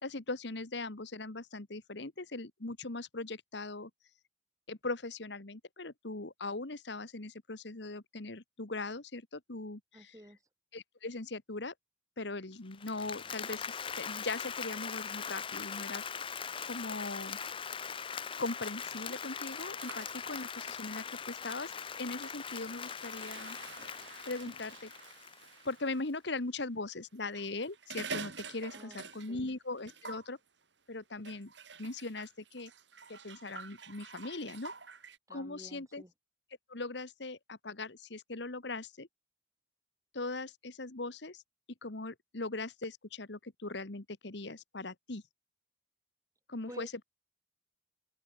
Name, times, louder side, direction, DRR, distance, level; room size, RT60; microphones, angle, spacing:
voice 1, 0.0-3.9 4.7-10.1 10.7-11.7 12.2-16.0 16.6-17.4 18.4-23.6 24.2-24.9 25.6-30.4 30.9-31.5 31.8-32.7 33.1-34.7 35.3-36.0 36.7-39.1 40.1-41.4 41.8-45.2 46.5-47.0, left 3 dB, 65° left, 1.6 m, -40 dB
voice 2, 9.9-10.4 28.7-29.5 35.3-36.1 46.7-46.9, right 1 dB, 15° right, 2.7 m, -52 dB
Applause, 12.7-25.7, left 7 dB, 30° left, 0.6 m, -41 dB
sound 1, 19.5-26.1 27.1-29.5 29.8-30.3 31.2-35.2, right 5 dB, 70° right, 7.2 m, -48 dB
open air
head